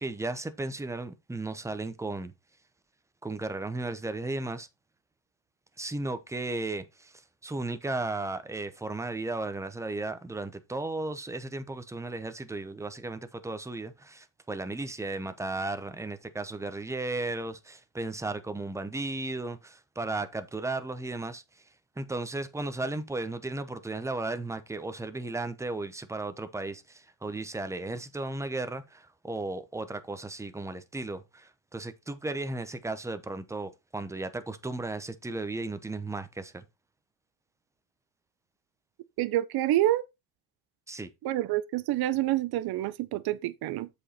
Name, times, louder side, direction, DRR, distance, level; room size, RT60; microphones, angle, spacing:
voice 1, 0.0-2.3 3.2-4.7 5.8-7.1 7.4-21.4 22.0-36.6 40.9-41.1, right 2 dB, 5° right, 0.8 m, -35 dB
voice 2, 39.2-40.1 41.2-43.9, right 14 dB, 50° right, 0.8 m, -27 dB
7.6 x 5.2 x 4.3 m
cardioid pair, 125°, 48 cm